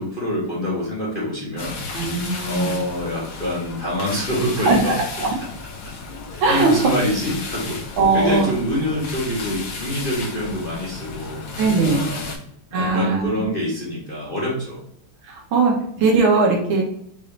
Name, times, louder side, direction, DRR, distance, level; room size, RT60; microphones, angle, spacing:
voice 1, 0.0-1.8 2.4-5.0 6.3-7.8 8.1-11.4 11.9-12.3 12.7-14.8, equal, 35° left, -5 dB, 1.0 m, -26 dB
sound 1, 1.6-12.4, left 4 dB, 70° left, 1.9 m, -34 dB
voice 2, 1.9-2.7 4.7-5.4 6.4-6.9 8.0-8.5 11.6-12.0 12.7-13.5 15.2-16.8, right 3 dB, 70° right, -1 dB, 1.9 m, -19 dB
5.3 x 2.7 x 3.2 m, 0.68 s
omnidirectional pair, 2.4 m